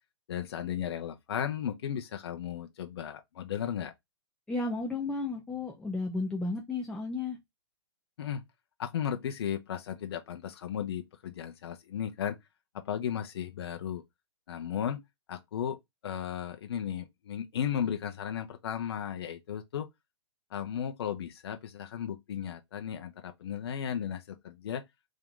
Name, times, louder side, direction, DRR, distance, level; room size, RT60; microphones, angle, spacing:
voice 1, 0.3-3.9 8.2-8.4 8.8-12.4 12.7-14.0 14.5-15.0 15.3-15.8 16.0-19.9 20.5-24.8, left 9 dB, 60° left, 0.8 m, -35 dB
voice 2, 4.5-7.4, left 3 dB, 5° left, 0.6 m, -33 dB
3.7 x 2.8 x 3.6 m
hypercardioid pair, 135°, 15 cm